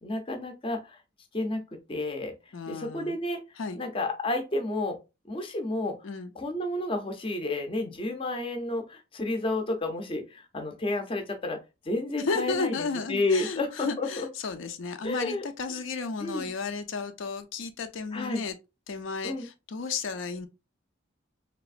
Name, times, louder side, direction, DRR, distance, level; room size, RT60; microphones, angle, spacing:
voice 1, 0.0-1.0 1.3-1.6 1.9-2.3 2.7-3.4 3.8-5.0 5.3-6.0 6.4-11.6 11.8-12.8 13.1-14.3 15.0-15.4 16.2-16.5 18.1-18.4 19.2-19.5, left 2 dB, 25° left, 0.5 m, -31 dB
voice 2, 2.5-3.2 3.6-3.8 6.0-6.3 12.2-18.6 18.9-20.5, left 4 dB, 75° left, 0.5 m, -33 dB
3.2 x 2.9 x 2.4 m
head